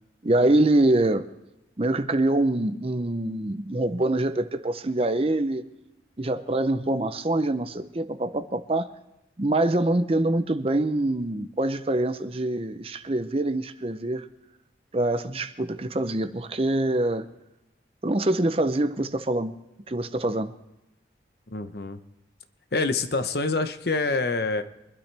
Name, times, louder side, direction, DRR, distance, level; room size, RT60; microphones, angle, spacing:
voice 1, 0.2-1.3 1.8-5.6 6.2-8.9 9.4-14.3 14.9-17.3 18.0-19.5 19.9-20.5, right 1 dB, 30° right, 0.6 m, -24 dB
voice 2, 21.5-22.0 22.7-24.6, left 3 dB, 60° left, 0.9 m, -26 dB
24.0 x 12.0 x 3.4 m
head